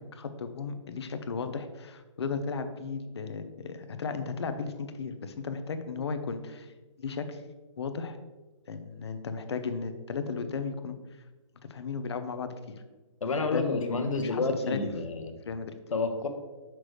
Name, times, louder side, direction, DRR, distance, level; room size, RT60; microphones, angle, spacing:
voice 1, 0.0-7.4 7.8-8.2 8.7-11.0 11.7-12.8 13.5-14.9 15.5-15.7, left 5 dB, 55° left, 9 dB, 0.7 m, -35 dB
voice 2, 13.2-15.3 15.9-16.3, left 3 dB, 85° left, 6 dB, 1.1 m, -29 dB
6.4 x 5.9 x 3.2 m, 1.2 s
hypercardioid pair, 170°, 17 cm